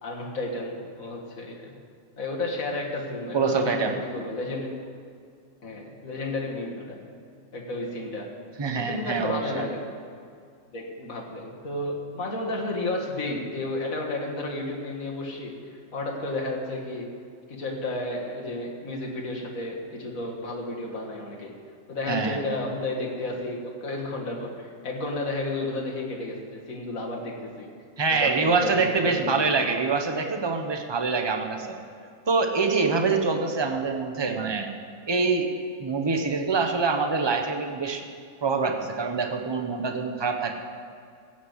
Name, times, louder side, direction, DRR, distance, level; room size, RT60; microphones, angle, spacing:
voice 1, 0.0-1.7 2.2-4.7 5.6-7.0 7.5-8.3 8.7-9.8 10.7-17.1 17.5-21.5 21.9-27.7 28.1-29.5, left 2 dB, 70° left, -1 dB, 2.3 m, -32 dB
voice 2, 3.3-3.9 8.6-9.6 22.1-22.4 28.0-31.8 32.3-34.7 35.1-35.5 35.8-38.0 38.4-40.5, right 4 dB, 20° right, 4 dB, 0.9 m, -25 dB
15.5 x 6.4 x 8.0 m, 2.2 s
omnidirectional pair, 1.5 m